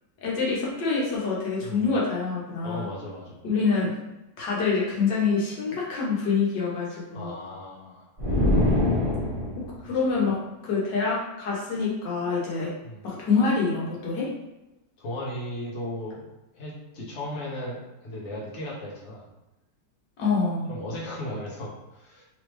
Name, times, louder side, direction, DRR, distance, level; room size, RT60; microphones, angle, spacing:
voice 1, 0.2-2.9 3.4-3.9 4.4-7.3 9.6-10.4 10.6-12.7 13.0-14.3 20.2-20.7, left 4 dB, 85° left, -5 dB, 1.7 m, -26 dB
voice 2, 1.6-1.9 2.6-3.4 7.1-8.1 9.9-10.2 12.8-13.0 15.0-16.3 16.5-19.3 20.7-22.2, left 1 dB, 45° left, -5 dB, 1.2 m, -36 dB
sound 1, 8.2-9.8, left 1 dB, 25° right, 0.8 m, -23 dB
3.5 x 3.2 x 3.1 m, 0.96 s
omnidirectional pair, 1.8 m